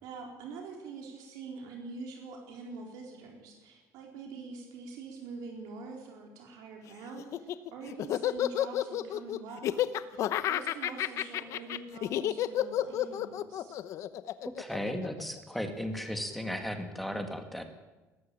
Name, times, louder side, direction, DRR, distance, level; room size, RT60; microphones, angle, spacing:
voice 1, 0.0-13.8, right 4 dB, 75° right, 1 dB, 4.3 m, -45 dB
Laughter, 7.2-15.6, left 12 dB, 50° left, 0.9 m, -31 dB
voice 2, 14.5-17.6, equal, ahead, 6 dB, 2.2 m, -35 dB
20.0 x 14.5 x 9.0 m, 1.1 s
cardioid pair, 160°, 7 cm